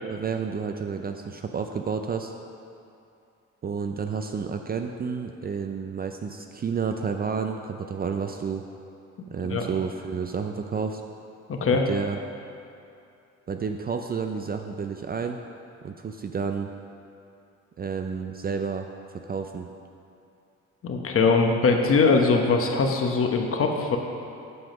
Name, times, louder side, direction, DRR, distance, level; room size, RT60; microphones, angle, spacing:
voice 1, 0.0-2.3 3.6-8.6 9.3-11.0 11.7-12.2 13.5-15.4 15.8-16.7 17.8-19.7, right 6 dB, 30° right, 5 dB, 0.4 m, -30 dB
voice 2, 11.5-11.9 20.8-24.0, left 4 dB, 45° left, 3 dB, 1.0 m, -21 dB
7.8 x 5.7 x 5.2 m, 2.6 s
cardioid pair, 90°, 30 cm